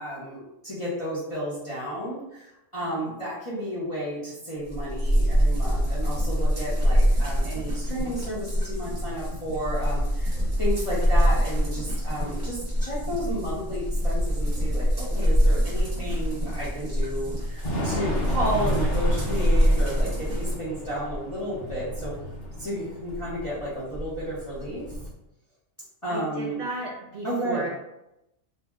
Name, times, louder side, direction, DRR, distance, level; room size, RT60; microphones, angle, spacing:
voice 1, 0.0-22.1 22.6-25.0 26.0-26.6 27.2-27.7, equal, 35° left, -9 dB, 0.6 m, -32 dB
voice 2, 2.8-3.1 26.1-27.7, right 2 dB, 60° right, -2 dB, 0.8 m, -35 dB
sound 1, 4.7-20.5, equal, 40° right, 1.1 m, -25 dB
Thunder / Rain, 11.7-25.1, equal, 65° left, 1.0 m, -35 dB
2.6 x 2.0 x 3.4 m, 0.89 s
omnidirectional pair, 1.3 m